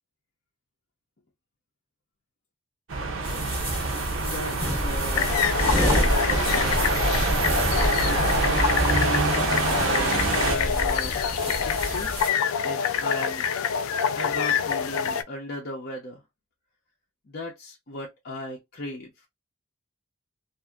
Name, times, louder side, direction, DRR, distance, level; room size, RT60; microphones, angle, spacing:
sound 1, 2.9-10.6, right 3 dB, 65° right, 0.6 m, -26 dB
sound 2, 3.2-12.3, equal, 5° right, 1.9 m, -29 dB
voice 1, 4.2-6.6 8.0-12.1 12.6-13.5 14.2-16.2 17.3-19.1, left 1 dB, 50° left, 0.7 m, -36 dB
sound 3, 5.1-15.2, left 7 dB, 80° left, 0.3 m, -26 dB
2.7 x 2.5 x 2.3 m
head